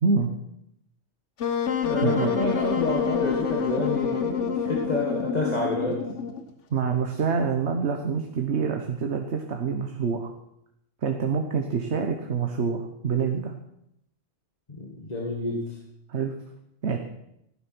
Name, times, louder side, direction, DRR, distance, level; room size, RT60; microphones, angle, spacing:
voice 1, 0.0-0.4 2.0-2.3 6.7-10.3 11.0-13.5 16.1-16.3 16.8-17.0, right 5 dB, 70° right, 4 dB, 1.4 m, -26 dB
Wind instrument woodwind instrument, 1.4-6.5, left 7 dB, 90° left, 1.5 m, -27 dB
voice 2, 1.8-6.0 14.7-15.8, left 2 dB, 35° left, -1 dB, 2.0 m, -28 dB
15.5 x 10.5 x 6.1 m, 0.81 s
omnidirectional pair, 1.2 m